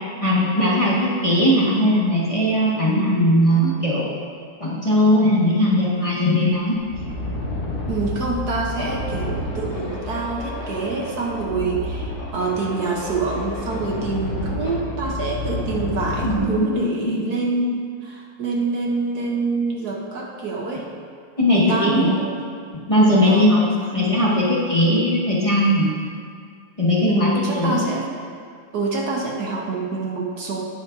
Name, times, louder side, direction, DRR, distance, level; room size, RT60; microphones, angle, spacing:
voice 1, 0.2-4.1 4.6-6.8 16.2-17.2 21.4-22.1 22.9-25.9 26.8-27.8, equal, 20° left, -7 dB, 1.5 m, -19 dB
sound 1, 6.6-16.4, left 2 dB, 40° left, 2.4 m, -30 dB
voice 2, 7.9-20.9 21.5-22.3 23.2-23.5 27.1-28.1 28.7-30.6, right 3 dB, 60° right, -2 dB, 1.4 m, -26 dB
18.5 x 7.4 x 2.7 m, 2.2 s
omnidirectional pair, 2.0 m